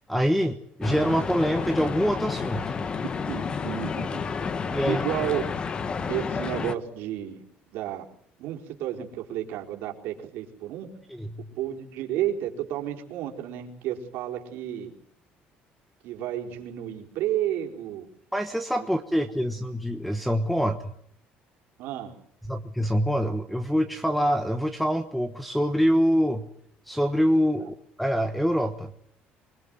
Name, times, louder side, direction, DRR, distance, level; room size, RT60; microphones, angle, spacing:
voice 1, 0.1-2.7 4.7-5.0 11.1-11.5 18.3-20.8 22.5-26.5 26.9-28.9, equal, ahead, 8 dB, 1.1 m, -25 dB
sound 1, 0.8-6.7, left 5 dB, 25° left, 1.2 m, -30 dB
voice 2, 3.0-4.2 4.9-5.5 6.1-8.0 8.4-10.9 11.6-14.9 16.0-18.1 21.8-22.2, right 11 dB, 75° right, 1 dB, 4.6 m, -32 dB
26.5 x 21.0 x 7.9 m, 0.67 s
cardioid pair, 170°, 4 cm